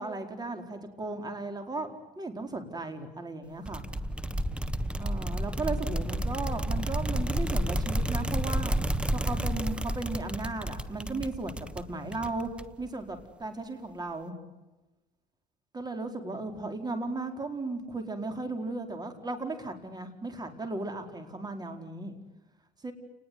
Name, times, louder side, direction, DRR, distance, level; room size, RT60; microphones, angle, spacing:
voice 1, 0.0-1.9 2.2-3.8 5.0-8.8 9.1-12.5 12.8-14.3 15.7-22.1 22.8-22.9, right 2 dB, 25° right, 6 dB, 4.6 m, -36 dB
sound 1, 3.7-12.9, right 1 dB, 5° right, 1.2 m, -31 dB
29.5 x 20.0 x 9.5 m, 1.1 s
cardioid pair, 110°, 17 cm